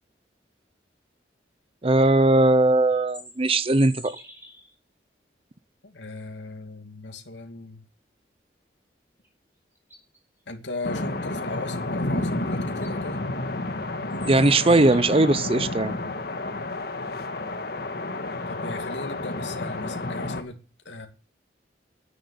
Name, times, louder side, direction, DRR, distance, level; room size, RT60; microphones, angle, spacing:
voice 1, 1.8-4.2 14.3-15.9, right 2 dB, 30° right, 0.7 m, -19 dB
sound 1, 2.9-4.7 9.2-9.3 9.7-10.2 12.2-12.3 12.7-12.9 14.1-15.5, equal, 10° right, 4.2 m, -44 dB
voice 2, 5.8-7.8 10.5-13.2 18.5-20.6 20.8-21.1, left 2 dB, 85° left, 2.4 m, -37 dB
sound 2, 10.8-20.4, left 2 dB, 60° left, 1.5 m, -30 dB
10.5 x 9.4 x 8.4 m
head